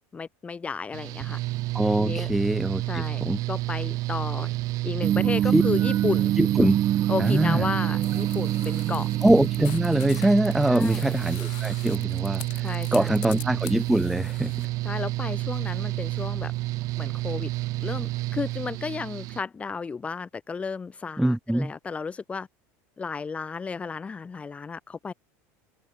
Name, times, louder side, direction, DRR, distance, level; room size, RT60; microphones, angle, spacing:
voice 1, 0.1-1.4 2.0-2.3 2.9-3.2 3.5-4.5 4.8-6.3 7.1-9.1 10.7-11.1 12.6-13.5 14.8-16.5 17.0-17.5 17.8-22.5 23.0-25.1, left 5 dB, 15° left, 1.0 m, -33 dB
Mechanical fan, 0.9-19.4, right 19 dB, 50° right, 1.4 m, -30 dB
voice 2, 1.7-3.4 5.5-5.6 6.4-6.8 7.2-7.6 9.2-14.7 21.2-21.7, right 1 dB, 5° right, 0.4 m, -23 dB
sound 1, 5.0-10.4, right 11 dB, 35° right, 1.2 m, -26 dB
sound 2, 8.0-14.7, left 40 dB or more, 65° left, 1.7 m, -44 dB
supercardioid pair, 135°, 7 cm